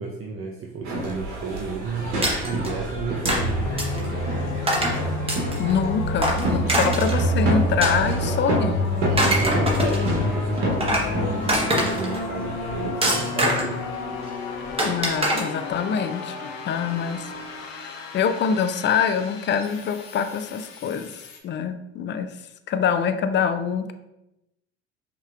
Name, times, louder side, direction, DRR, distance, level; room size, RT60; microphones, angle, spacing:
voice 1, 0.0-2.1 2.4-4.6 9.1-13.8, right 4 dB, 40° right, 0 dB, 0.7 m, -32 dB
sound 1, 0.8-12.9, equal, 80° right, 1.0 m, -29 dB
sound 2, 2.2-2.7 3.3-3.4 3.8-4.1 4.7-5.0 5.3-5.7 6.2-7.2 7.8-8.5 9.0-10.1 10.6-11.1 11.5-12.2 13.0-13.8 14.8-15.4, right 1 dB, 20° right, 1.3 m, -23 dB
sound 3, 3.3-21.4, left 1 dB, 75° left, 0.7 m, -29 dB
voice 2, 5.6-8.8 14.8-17.3 17.5-22.3 22.7-23.9, left 7 dB, 35° left, 9 dB, 0.5 m, -25 dB
5.5 x 3.0 x 2.4 m, 0.90 s
hypercardioid pair, 70°, 32 cm